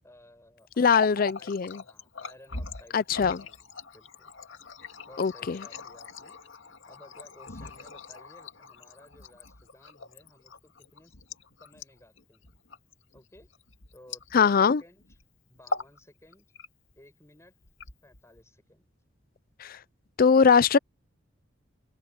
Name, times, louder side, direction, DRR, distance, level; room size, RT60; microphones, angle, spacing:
voice 1, 0.0-4.3 5.0-6.4 6.8-11.2 11.6-12.6 13.1-13.5 13.9-15.2 15.5-16.5 16.9-17.5 18.0-18.9, left 1 dB, 15° left, 6.7 m, -56 dB
Water tap faucet, 0.7-14.7 15.0-15.2 15.6-16.0 16.3-17.0 17.6-18.4, left 3 dB, 85° left, 2.1 m, -41 dB
voice 2, 0.8-1.8 2.9-3.4 5.2-5.6 14.3-14.8 19.6-19.8 20.2-20.8, left 6 dB, 50° left, 0.4 m, -21 dB
head